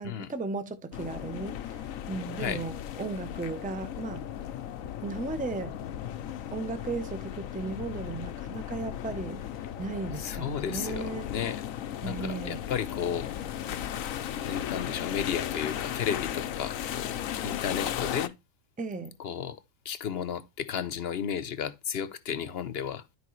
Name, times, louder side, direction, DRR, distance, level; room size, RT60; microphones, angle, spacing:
voice 1, 0.0-4.2 5.0-5.8 6.5-9.4 9.8-11.3 12.0-12.6 18.8-19.1, right 3 dB, 10° right, 0.7 m, -36 dB
sound 1, 0.9-18.3, left 10 dB, 85° left, 1.1 m, -36 dB
voice 2, 2.4-2.7 10.2-11.6 12.0-13.3 14.4-18.3 19.2-19.6 19.8-23.0, left 8 dB, 55° left, 1.0 m, -33 dB
12.5 x 4.9 x 3.1 m
omnidirectional pair, 1.4 m